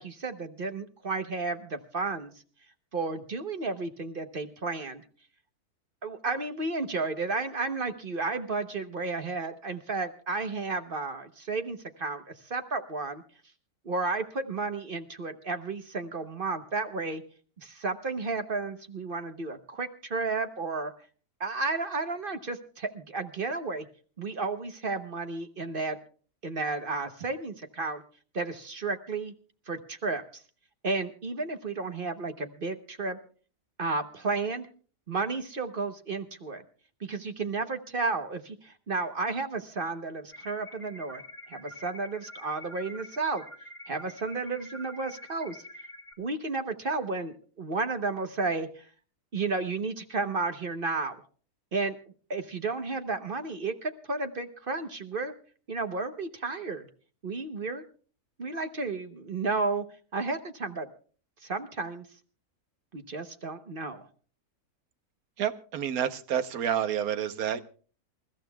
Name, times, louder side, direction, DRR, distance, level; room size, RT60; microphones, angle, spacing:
voice 1, 0.0-2.3 2.9-5.0 6.0-13.2 13.8-17.2 17.6-20.9 21.4-23.9 24.2-26.0 26.4-28.0 28.3-29.3 29.7-30.4 30.8-33.2 33.8-34.7 35.1-36.6 37.0-41.2 41.5-43.4 43.9-45.6 46.2-48.9 49.3-51.2 51.7-52.0 52.3-55.3 55.7-56.9 57.2-57.8 58.4-59.8 60.1-60.9 61.4-62.1 62.9-64.1, right 3 dB, 40° right, 8 dB, 1.0 m, -32 dB
sound 1, 40.3-46.1, left 1 dB, 20° left, 1.5 m, -47 dB
voice 2, 65.4-67.6, right 9 dB, 75° right, 11 dB, 1.4 m, -29 dB
28.0 x 14.0 x 2.3 m, 0.40 s
omnidirectional pair, 1.6 m